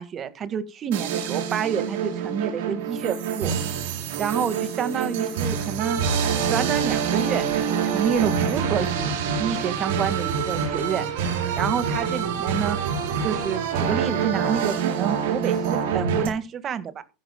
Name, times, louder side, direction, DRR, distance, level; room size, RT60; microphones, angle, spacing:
voice 1, 0.0-3.5 4.2-6.0 6.5-9.1 9.4-11.1 11.6-12.8 13.2-17.0, right 8 dB, 35° right, 12 dB, 1.8 m, -28 dB
sound 1, 0.9-16.3, right 7 dB, 65° right, 4.3 m, -26 dB
16.0 x 12.0 x 2.3 m, 0.31 s
hypercardioid pair, 85°, 0 cm